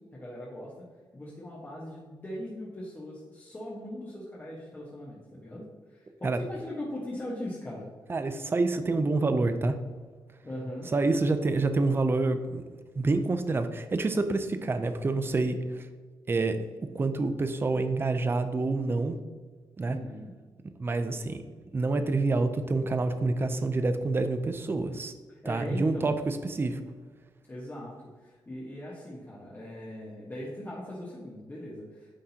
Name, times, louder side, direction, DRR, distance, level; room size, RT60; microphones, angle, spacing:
voice 1, 0.1-0.7 1.1-5.6 5.9-7.9 10.4-10.9 19.8-20.3 25.3-26.1 27.5-32.1, left 1 dB, 25° left, -6 dB, 1.3 m, -40 dB
voice 2, 8.1-9.8 10.9-12.6 13.0-15.9 16.3-16.6 16.9-19.2 19.8-20.0 20.8-21.4 21.7-25.1 25.4-26.8, right 3 dB, 25° right, 9 dB, 0.5 m, -27 dB
9.8 x 3.7 x 2.8 m, 1.4 s
cardioid pair, 100°, 9 cm